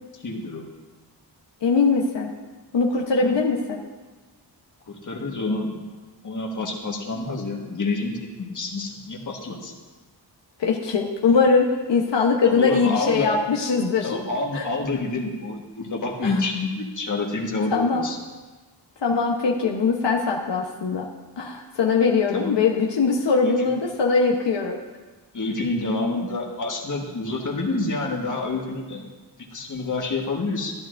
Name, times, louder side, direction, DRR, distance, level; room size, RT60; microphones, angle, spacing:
voice 1, 0.2-0.6 3.2-3.4 4.9-5.9 6.2-9.7 12.4-13.4 14.0-18.2 22.3-22.5 25.3-29.0 29.5-30.7, left 3 dB, 45° left, 0 dB, 1.5 m, -28 dB
voice 2, 1.6-2.3 2.7-3.8 10.6-14.2 14.5-14.7 16.2-16.3 17.7-18.1 19.0-21.1 21.4-24.8, left 4 dB, 80° left, -1 dB, 1.0 m, -21 dB
13.0 x 12.0 x 2.5 m, 1.3 s
wide cardioid pair, 135°, 42 cm